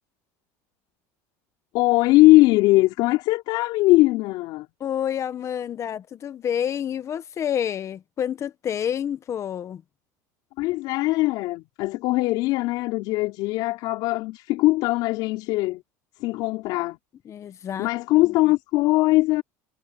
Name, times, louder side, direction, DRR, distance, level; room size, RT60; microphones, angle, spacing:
voice 1, 1.7-4.7 10.6-15.8 16.2-17.0 17.8-19.4, left 20 dB, 65° left, 4.6 m, -20 dB
voice 2, 4.8-9.8 17.3-17.9, left 9 dB, 35° left, 1.6 m, -28 dB
supercardioid pair, 110°, 8 cm